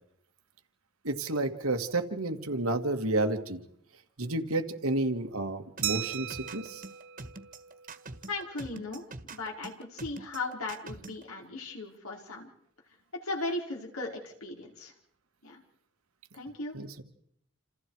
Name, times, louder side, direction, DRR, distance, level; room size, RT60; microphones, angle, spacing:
voice 1, 1.0-3.6 4.2-6.8 16.7-17.0, right 2 dB, 90° right, 5 dB, 2.3 m, -31 dB
sound 1, 5.8-11.2, right 2 dB, 40° right, 1.7 m, -44 dB
Glass, 5.8-8.3, right 13 dB, 65° right, 1.0 m, -37 dB
voice 2, 8.3-9.0 9.3-12.5 13.2-14.9 15.4-15.6 16.3-16.8, left 2 dB, 85° left, 0 dB, 4.9 m, -37 dB
28.5 x 28.5 x 4.9 m, 0.72 s
head